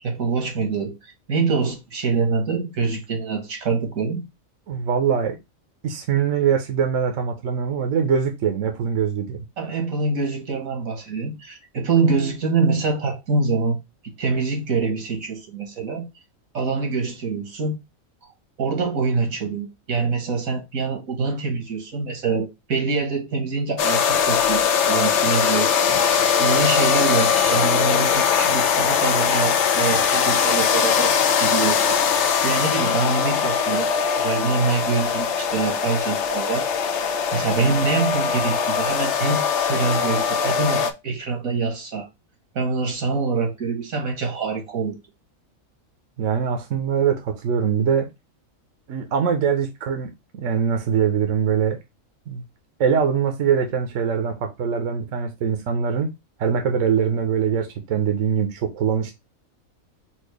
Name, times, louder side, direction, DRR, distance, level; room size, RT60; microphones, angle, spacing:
voice 1, 0.0-1.0 1.3-4.2 9.6-13.8 14.2-16.1 16.5-17.8 18.6-33.9 34.2-42.1 42.6-45.0, right 4 dB, 85° right, 1.8 m, -25 dB
voice 2, 4.7-5.4 5.8-9.4 46.2-48.1 48.9-51.8 52.3-52.4 52.8-56.1 56.4-59.1, right 7 dB, 70° right, 1.1 m, -22 dB
sound 1, 23.8-40.9, left 7 dB, 65° left, 0.8 m, -21 dB
4.5 x 2.5 x 4.7 m
omnidirectional pair, 1.4 m